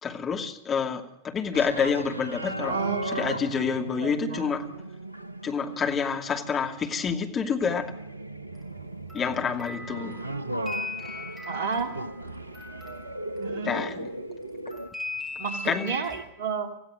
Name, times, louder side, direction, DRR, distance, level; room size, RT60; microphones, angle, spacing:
voice 1, 0.0-2.8 3.0-4.6 5.4-7.9 9.1-10.2 13.6-14.1 15.6-15.9, left 6 dB, 25° left, 3 dB, 2.6 m, -28 dB
sound 1, 1.5-14.9, right 1 dB, 85° right, 0.7 m, -37 dB
voice 2, 2.7-3.5 4.0-4.5 11.5-12.0 13.4-13.9 15.4-16.7, right 6 dB, 55° right, 8 dB, 2.4 m, -32 dB
sound 2, 8.5-14.2 14.7-16.2, left 3 dB, ahead, 6.2 m, -40 dB
26.0 x 16.5 x 6.5 m, 0.79 s
figure-of-eight pair, 90°, 0 cm